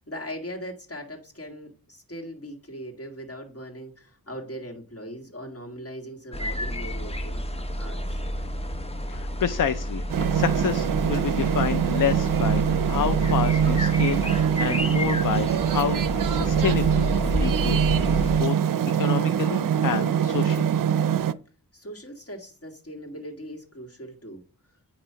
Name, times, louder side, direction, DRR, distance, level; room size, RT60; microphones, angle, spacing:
voice 1, 0.0-7.4 7.8-8.1 21.7-24.4, equal, 40° left, 1 dB, 2.1 m, -39 dB
sound 1, 6.3-18.4, equal, 15° left, 0.7 m, -30 dB
voice 2, 9.1-17.8 18.4-18.6 19.0-20.7, left 8 dB, 60° left, 11 dB, 0.5 m, -29 dB
sound 2, 10.1-21.3, right 9 dB, 60° right, 0.5 m, -23 dB
9.0 x 3.0 x 5.6 m, 0.37 s
wide cardioid pair, 85°, 36 cm